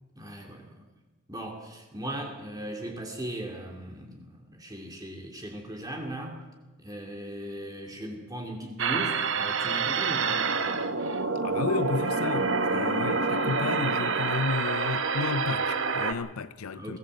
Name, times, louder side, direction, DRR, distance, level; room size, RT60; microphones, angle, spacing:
voice 1, 0.2-0.8 1.3-6.4 6.8-10.5 16.7-17.0, right 1 dB, 15° right, 2.7 m, -38 dB
sound 1, 8.8-16.1, right 4 dB, 65° right, 1.2 m, -27 dB
voice 2, 11.3-17.0, left 4 dB, 90° left, 0.6 m, -32 dB
21.5 x 16.0 x 7.8 m
head